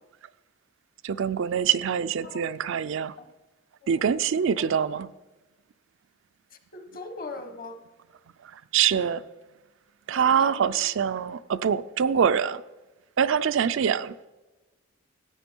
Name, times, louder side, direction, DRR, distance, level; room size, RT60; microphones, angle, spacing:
voice 1, 1.0-3.1 3.9-5.1 8.7-9.2 10.1-12.6 13.2-14.3, right 7 dB, 70° right, 0.4 m, -24 dB
voice 2, 6.5-7.8 10.1-10.7, left 3 dB, 45° left, 1.3 m, -40 dB
13.5 x 8.4 x 4.5 m
head